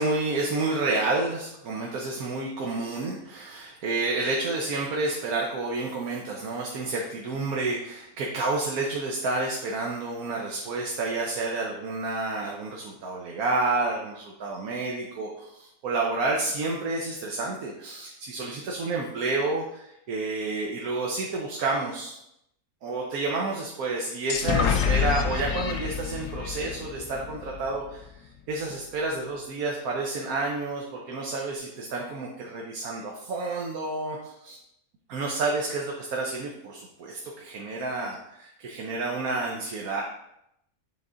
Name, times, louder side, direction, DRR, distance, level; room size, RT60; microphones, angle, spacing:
voice 1, 0.0-22.2 22.8-28.2 28.5-34.6 35.1-40.0, right 3 dB, 90° right, -1 dB, 1.3 m, -30 dB
sound 1, 24.3-28.0, left 7 dB, 70° left, 1.0 m, -28 dB
7.6 x 3.6 x 3.8 m, 0.81 s
omnidirectional pair, 1.5 m